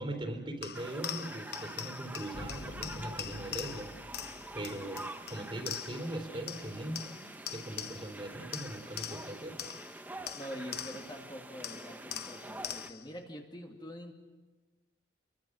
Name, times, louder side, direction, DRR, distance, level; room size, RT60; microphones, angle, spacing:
voice 1, 0.0-3.9 4.2-9.6, right 1 dB, 25° right, 5 dB, 3.3 m, -40 dB
sound 1, 0.6-6.2 6.5-8.2 8.5-11.2 11.6-13.1, left 10 dB, 55° left, 0.9 m, -43 dB
sound 2, 0.7-12.9, right 1 dB, 10° right, 0.9 m, -46 dB
sound 3, 2.3-5.6, left 1 dB, 80° left, 1.2 m, -48 dB
voice 2, 10.3-14.1, equal, 20° left, 1 dB, 2.2 m, -45 dB
27.0 x 23.5 x 6.3 m, 1.3 s
head